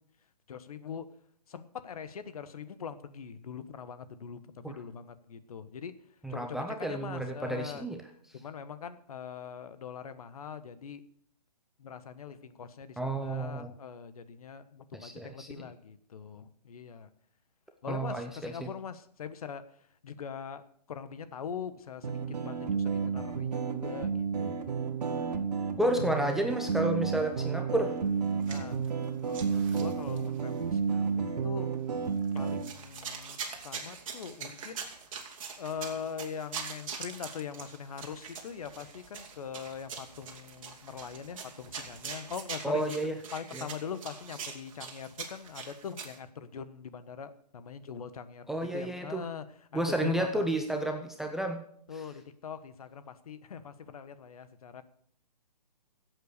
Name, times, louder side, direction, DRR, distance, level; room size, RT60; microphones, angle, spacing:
voice 1, 0.5-1.0 1.5-5.9 6.3-7.9 8.3-11.0 11.8-17.1 17.8-19.6 20.0-20.6 20.9-22.2 22.4-24.7 28.5-28.9 29.3-31.1 31.4-31.7 32.3-34.8 35.6-42.8 43.3-48.5 48.7-49.7 50.0-50.5 51.9-54.8, left 7 dB, 60° left, 12 dB, 1.3 m, -42 dB
voice 2, 6.2-8.0 13.0-13.7 15.0-15.5 17.9-18.7 25.8-27.9 42.6-43.2 43.5-43.6 48.5-49.2 49.7-51.6, right 1 dB, ahead, 4 dB, 0.6 m, -31 dB
sound 1, 22.0-32.6, right 6 dB, 70° right, 1.7 m, -31 dB
walking slow walking fast and running on sand, 28.3-29.0 29.3-30.4 30.9-31.0 32.2-46.2, right 6 dB, 50° right, 2.5 m, -43 dB
14.5 x 8.1 x 6.7 m, 0.63 s
hypercardioid pair, 150°, 21 cm